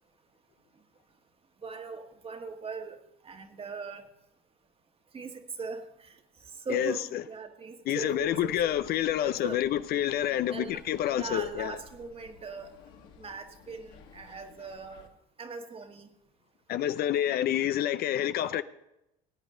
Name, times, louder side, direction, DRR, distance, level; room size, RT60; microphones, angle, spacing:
voice 1, 1.6-3.0 3.2-4.1 5.1-6.2 6.6-8.8 9.2-9.6 10.5-10.8 11.2-12.7 13.2-15.1 15.4-16.1 18.4-18.6, right 4 dB, 30° right, 1.6 m, -40 dB
voice 2, 6.7-7.2 7.9-11.8 16.7-18.6, left 11 dB, 55° left, 0.6 m, -28 dB
sound 1, 8.0-15.1, left 5 dB, 75° left, 2.2 m, -55 dB
19.5 x 8.8 x 3.8 m
supercardioid pair, 85°, 19 cm